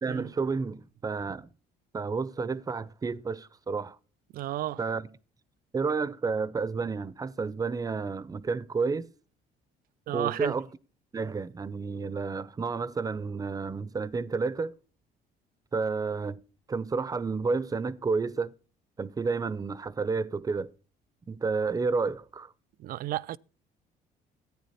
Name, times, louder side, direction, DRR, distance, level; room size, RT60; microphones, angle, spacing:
voice 1, 0.0-1.5 1.9-4.0 4.8-5.1 5.7-9.1 10.1-10.7 11.1-14.7 15.7-16.4 16.7-18.5 19.0-20.7 21.3-22.5, right 4 dB, 20° right, 0.6 m, -30 dB
voice 2, 4.3-4.8 10.1-10.5 22.8-23.4, right 14 dB, 60° right, 0.4 m, -32 dB
14.0 x 9.1 x 4.2 m
cardioid pair, 110°, 17 cm